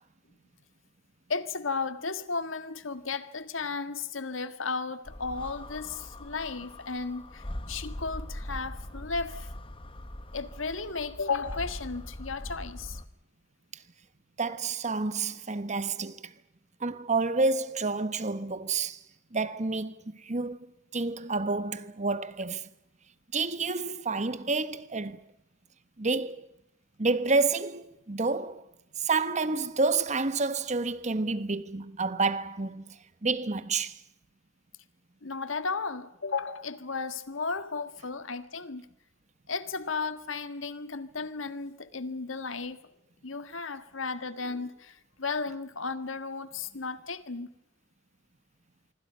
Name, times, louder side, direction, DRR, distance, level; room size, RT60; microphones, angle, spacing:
voice 1, 1.3-9.5 10.3-13.0 35.2-38.8 39.5-42.8 43.2-47.5, left 4 dB, 85° left, 1.7 m, -34 dB
sound 1, 5.1-13.1, left 1 dB, 25° left, 1.1 m, -41 dB
voice 2, 14.4-16.3 16.8-19.0 19.3-20.6 20.9-22.7 23.3-25.2 26.0-26.5 27.0-28.6 29.0-33.0 33.2-34.0, right 3 dB, 35° right, 1.2 m, -29 dB
26.5 x 24.5 x 5.7 m
head